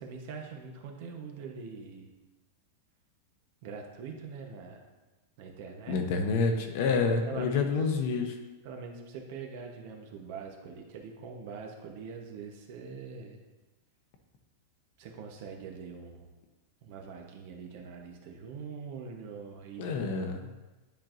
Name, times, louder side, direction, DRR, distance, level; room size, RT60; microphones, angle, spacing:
voice 1, 0.0-2.1 3.6-4.8 5.4-6.0 7.2-7.7 8.6-13.4 15.0-16.3 16.8-20.6, right 5 dB, 50° right, 2 dB, 1.0 m, -43 dB
voice 2, 5.9-8.4 19.8-20.4, left 4 dB, 50° left, 4 dB, 0.8 m, -28 dB
10.5 x 4.4 x 2.6 m, 1.2 s
supercardioid pair, 165°, 0 cm